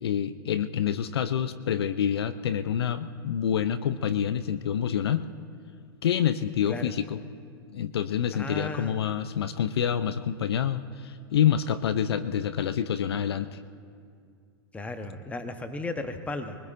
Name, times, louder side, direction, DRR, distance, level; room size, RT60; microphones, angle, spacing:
voice 1, 0.0-5.3 6.0-7.2 7.7-13.6, left 9 dB, 70° left, 13 dB, 0.6 m, -27 dB
voice 2, 8.3-9.0 14.7-16.6, left 2 dB, 10° left, 7 dB, 1.0 m, -35 dB
23.0 x 20.0 x 2.6 m, 2.2 s
hypercardioid pair, 110°, 14 cm